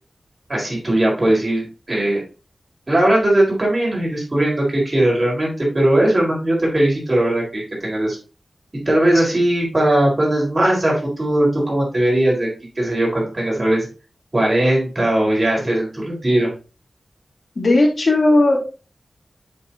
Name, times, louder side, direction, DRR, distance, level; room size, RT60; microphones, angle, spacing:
voice 1, 0.5-2.2 2.9-8.2 8.9-12.5 12.8-13.9 14.3-16.5, right 1 dB, 35° right, -3 dB, 4.2 m, -19 dB
voice 2, 17.6-18.6, left 2 dB, 60° left, 0 dB, 2.4 m, -15 dB
7.4 x 5.5 x 2.9 m, 0.33 s
wide cardioid pair, 100°, 0 cm